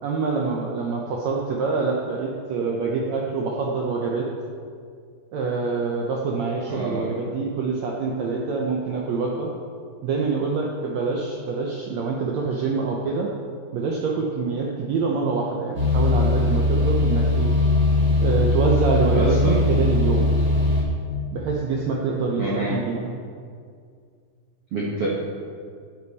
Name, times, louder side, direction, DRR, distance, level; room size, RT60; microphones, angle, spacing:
voice 1, 0.0-4.3 5.3-9.5 10.0-13.3 13.7-17.5 18.2-20.3 21.3-22.4 22.7-23.1, right 4 dB, 85° right, -2 dB, 1.5 m, -25 dB
voice 2, 6.7-7.1 19.1-19.6 22.4-22.8 24.7-25.1, right 2 dB, 65° right, -5 dB, 1.5 m, -27 dB
sound 1, 15.7-20.8, left 2 dB, 25° right, 2.0 m, -20 dB
9.9 x 9.3 x 4.1 m, 2.1 s
omnidirectional pair, 4.3 m